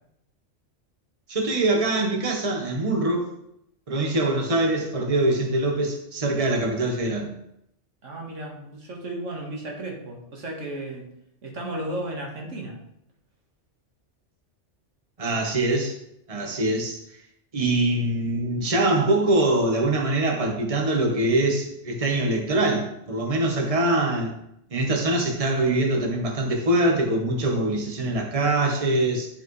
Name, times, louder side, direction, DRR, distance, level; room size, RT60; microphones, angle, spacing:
voice 1, 1.3-3.3 3.9-7.3 15.2-15.9 16.3-17.0 17.5-24.3 24.7-29.3, right 2 dB, 30° right, 1 dB, 1.2 m, -23 dB
voice 2, 8.0-11.2 11.4-12.8, right 1 dB, 85° right, -1 dB, 1.9 m, -34 dB
10.0 x 5.0 x 3.2 m, 0.76 s
omnidirectional pair, 1.2 m